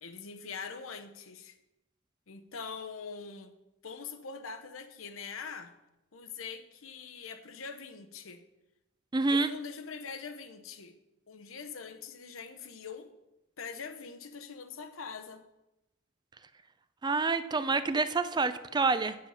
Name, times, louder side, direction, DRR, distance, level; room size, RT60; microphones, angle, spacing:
voice 1, 0.0-1.6 2.3-3.5 3.8-5.7 6.1-8.4 9.3-11.0 11.3-13.1 13.6-15.4, left 5 dB, 80° left, 8 dB, 0.9 m, -43 dB
voice 2, 9.1-9.5 17.0-19.2, right 3 dB, 20° right, 12 dB, 0.4 m, -27 dB
8.8 x 7.6 x 5.6 m, 0.95 s
head